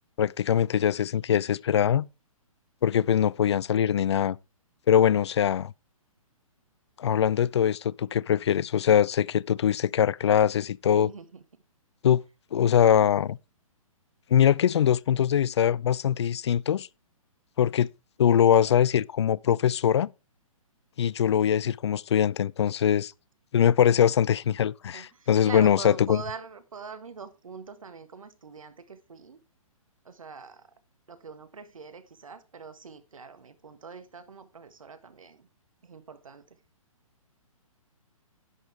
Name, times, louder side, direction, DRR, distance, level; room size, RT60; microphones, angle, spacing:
voice 1, 0.2-2.1 2.8-4.4 4.9-5.7 7.0-11.1 12.0-12.2 12.5-13.4 14.3-16.9 17.6-17.9 18.2-20.1 21.0-23.1 23.5-26.2, left 9 dB, 50° left, 0.4 m, -22 dB
voice 2, 10.9-11.4 24.9-29.4 30.0-30.7 31.1-35.5 35.8-36.5, right 5 dB, 65° right, 1.6 m, -43 dB
11.0 x 8.1 x 3.4 m
figure-of-eight pair, 125°, 18 cm